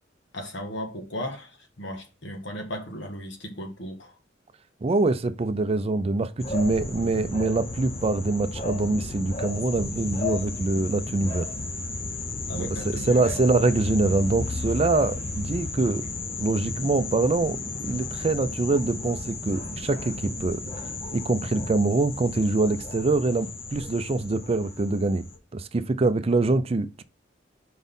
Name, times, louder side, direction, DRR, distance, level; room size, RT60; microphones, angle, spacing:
voice 1, 0.3-4.1 12.5-13.4, equal, 75° left, 1.5 m, -36 dB
voice 2, 4.8-11.5 12.5-16.0 16.4-17.6 17.8-20.6 21.1-25.3 25.5-27.0, right 3 dB, 35° right, 0.4 m, -24 dB
sound 1, 6.4-25.4, left 3 dB, 35° left, 0.8 m, -34 dB
5.1 x 4.1 x 5.3 m
head